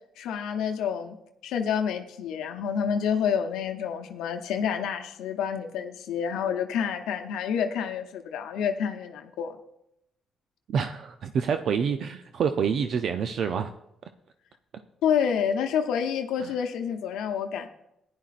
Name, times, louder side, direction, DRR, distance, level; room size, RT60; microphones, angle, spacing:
voice 1, 0.2-1.1 1.4-9.6 15.0-17.7, left 7 dB, 90° left, 5 dB, 0.7 m, -28 dB
voice 2, 10.7-13.7 16.4-16.5, right 6 dB, 65° right, 8 dB, 0.5 m, -27 dB
15.5 x 10.5 x 2.5 m, 0.81 s
cardioid pair, 90°, 0 cm